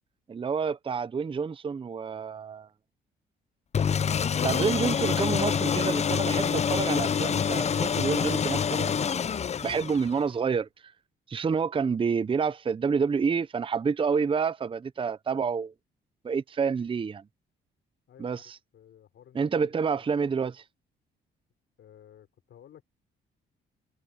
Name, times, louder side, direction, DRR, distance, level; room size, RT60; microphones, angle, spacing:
voice 1, 0.3-2.7 4.4-9.3 9.6-10.7 11.3-15.7 16.2-17.2 18.2-18.4 19.4-20.6, right 6 dB, 25° right, 0.6 m, -28 dB
sound 1, 3.7-10.3, left 7 dB, 35° left, 0.5 m, -26 dB
voice 2, 18.1-20.1 21.8-22.8, left 10 dB, 70° left, 3.9 m, -55 dB
cardioid pair, 90°, 20 cm